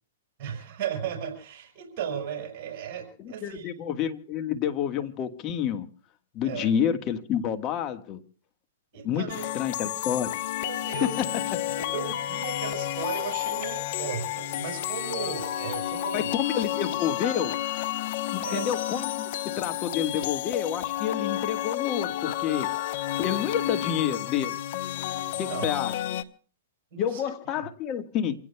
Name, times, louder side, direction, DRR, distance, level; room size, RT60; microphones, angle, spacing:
voice 1, 0.4-3.7 6.4-6.7 8.9-9.5 10.6-11.3 11.7-16.3 18.4-18.7 25.3-25.7 26.9-27.2 27.6-27.7, right 8 dB, 45° right, 5.2 m, -36 dB
voice 2, 3.2-5.9 6.3-8.2 9.0-9.2 9.5-10.3 16.1-17.5 18.5-22.7 23.2-24.5 25.4-26.0 27.0-28.3, left 9 dB, 30° left, 1.5 m, -29 dB
sound 1, 9.3-26.2, left 13 dB, 55° left, 0.9 m, -31 dB
27.5 x 17.0 x 2.3 m
hypercardioid pair, 130°, 0 cm